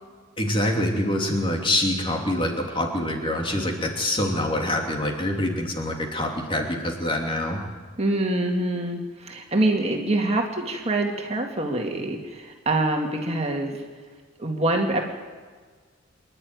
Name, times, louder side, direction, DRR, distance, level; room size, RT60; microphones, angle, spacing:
voice 1, 0.4-7.6, left 1 dB, 25° left, 2 dB, 2.9 m, -25 dB
voice 2, 8.0-13.8 14.4-15.0, right 2 dB, 30° right, 1 dB, 2.2 m, -25 dB
26.0 x 11.0 x 9.7 m, 1.5 s
head